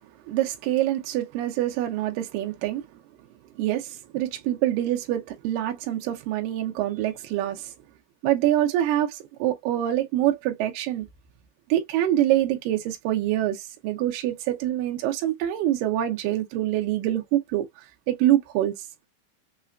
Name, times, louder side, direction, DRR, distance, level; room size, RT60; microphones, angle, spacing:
voice 1, 0.3-2.8 3.6-7.7 8.2-11.1 11.7-17.7 18.1-18.7, right 13 dB, 75° right, 2.2 m, -25 dB
5.7 x 2.1 x 2.5 m
omnidirectional pair, 4.3 m